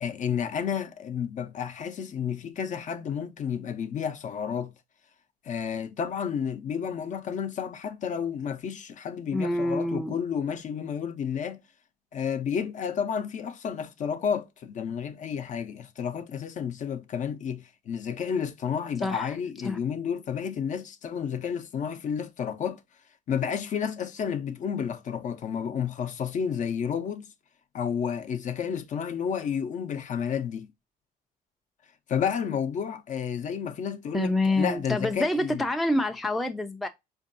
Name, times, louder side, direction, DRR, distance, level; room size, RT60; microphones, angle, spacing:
voice 1, 0.0-4.7 5.4-11.6 12.1-22.8 23.3-27.3 27.7-30.7 32.1-35.7, left 7 dB, 50° left, 0.6 m, -31 dB
voice 2, 9.3-10.2 19.0-19.3 19.6-19.8 34.1-36.9, left 1 dB, ahead, 0.3 m, -27 dB
4.4 x 2.5 x 2.5 m
cardioid pair, 110°, 17 cm